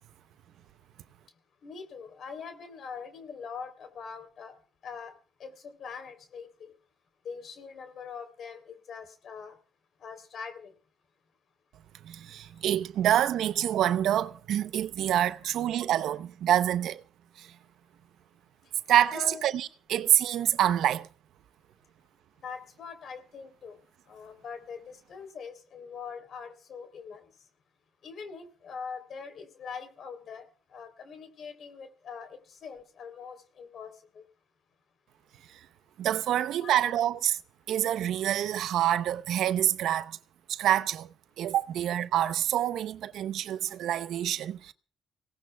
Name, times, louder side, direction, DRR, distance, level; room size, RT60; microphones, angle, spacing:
voice 1, 1.3-6.7 7.2-9.6 10.0-10.7 12.4-12.6 15.4-15.5 19.1-19.5 22.4-27.5 28.0-34.3 36.6-36.8, left 6 dB, 60° left, 3.3 m, -43 dB
voice 2, 12.0-17.0 17.4-17.5 18.9-21.1 36.0-37.4 37.7-40.2 40.5-44.7, right 11 dB, 80° right, 0.7 m, -27 dB
25.5 x 18.0 x 2.3 m
cardioid pair, 90°, 0 cm